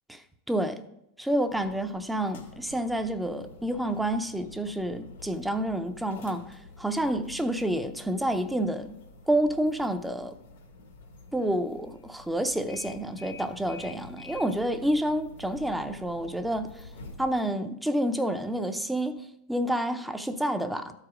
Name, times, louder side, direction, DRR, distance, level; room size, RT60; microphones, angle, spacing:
voice 1, 0.5-0.8 1.2-8.9 9.3-10.3 11.3-16.9 17.2-20.9, right 1 dB, 5° right, 0.6 m, -29 dB
sound 1, 1.5-17.3, left 2 dB, 85° left, 1.9 m, -48 dB
12.5 x 4.9 x 4.9 m
hypercardioid pair, 120°, 0 cm